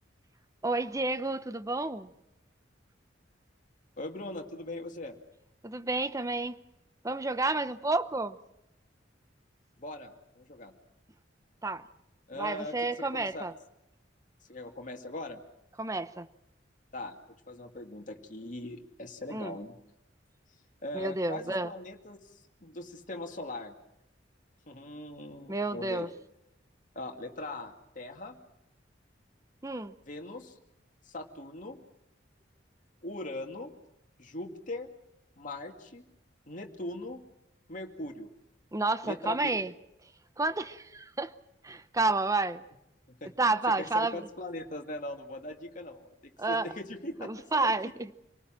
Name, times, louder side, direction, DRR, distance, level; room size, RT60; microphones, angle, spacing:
voice 1, 0.6-2.1 5.6-6.6 7.0-8.4 11.6-11.8 12.3-13.5 15.8-16.3 19.3-19.5 20.9-21.7 25.5-26.1 29.6-29.9 38.7-39.7 40.4-41.3 41.6-42.6 43.4-44.3 46.4-46.7 47.2-48.1, right 2 dB, 20° right, 12 dB, 0.8 m, -30 dB
voice 2, 4.0-5.2 9.8-10.7 12.3-13.5 14.5-15.4 16.9-17.2 17.5-19.8 20.8-22.3 22.6-23.7 24.7-26.1 26.9-28.4 30.1-30.5 31.1-31.8 33.0-33.7 34.2-34.9 35.4-36.0 36.5-37.2 37.7-38.3 39.0-39.6 43.1-43.3 43.8-47.7, left 1 dB, 45° left, 3 dB, 2.3 m, -40 dB
27.0 x 19.0 x 7.6 m, 0.86 s
head